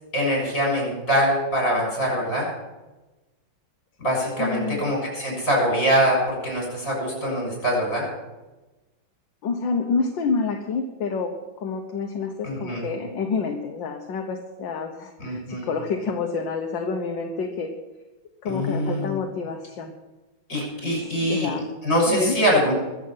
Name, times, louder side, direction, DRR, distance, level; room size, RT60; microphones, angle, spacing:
voice 1, 0.1-2.5 4.0-8.1 12.4-12.8 15.2-15.7 18.5-19.2 20.5-21.5 21.8-22.7, equal, 40° left, -2 dB, 7.1 m, -23 dB
voice 2, 4.4-4.8 9.4-11.3 11.6-17.7 18.4-20.0 21.1-21.6 22.1-22.4, left 4 dB, 70° left, 2 dB, 1.9 m, -28 dB
23.0 x 7.7 x 5.8 m, 1.1 s
omnidirectional pair, 2.1 m